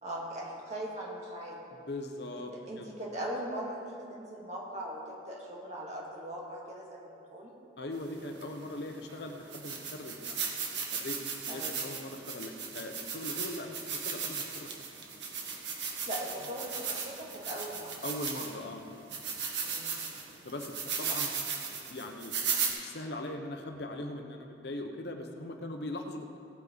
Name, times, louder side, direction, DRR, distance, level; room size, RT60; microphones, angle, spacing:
voice 1, 0.0-1.6 2.7-7.5 11.5-11.7 16.1-17.9 19.6-20.0, right 1 dB, 35° right, -3 dB, 2.4 m, -40 dB
voice 2, 1.7-2.9 7.8-10.4 10.9-14.7 18.0-18.9 20.4-21.3 21.7-26.4, left 1 dB, 60° left, 4 dB, 0.9 m, -40 dB
sound 1, 8.4-8.5 9.1-9.2 9.5-18.6 19.1-22.7, right 6 dB, 65° right, 1.7 m, -36 dB
17.5 x 8.8 x 4.1 m, 2.5 s
head